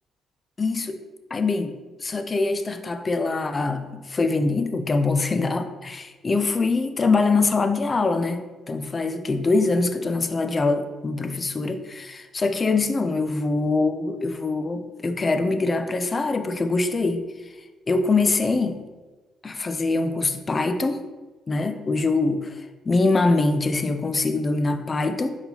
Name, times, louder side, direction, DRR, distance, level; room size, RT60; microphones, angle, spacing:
voice 1, 0.6-1.0 1.3-17.3 17.9-18.8 19.4-21.0 21.5-25.3, left 3 dB, 30° left, 8 dB, 0.4 m, -23 dB
4.2 x 4.1 x 2.8 m, 1.2 s
cardioid pair, 90°, 0 cm